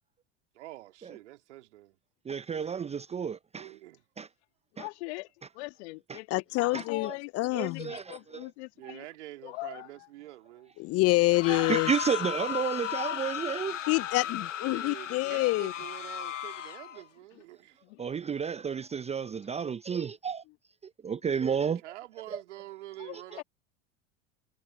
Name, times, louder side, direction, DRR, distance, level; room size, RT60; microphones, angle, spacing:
voice 1, 0.5-2.0 3.6-4.0 8.8-10.7 14.6-17.8 21.8-23.4, right 16 dB, 70° right, 2.7 m, -46 dB
voice 2, 2.2-3.7 4.2-4.3 4.8-4.9 6.1-6.2 6.7-7.1 7.5-8.4 8.8-8.9 11.5-13.8 18.0-20.4 21.0-21.8 22.3-22.4, right 7 dB, 15° right, 0.7 m, -32 dB
voice 3, 4.7-5.3 5.5-9.0 9.4-10.1 17.3-17.4 17.8-18.0 23.0-23.4, left 24 dB, 60° left, 2.6 m, -42 dB
voice 4, 6.3-7.9 10.8-11.9 13.9-15.7, left 21 dB, 40° left, 0.7 m, -27 dB
sound 1, 11.2-17.0, left 10 dB, 80° left, 1.2 m, -35 dB
hypercardioid pair, 80°, 36 cm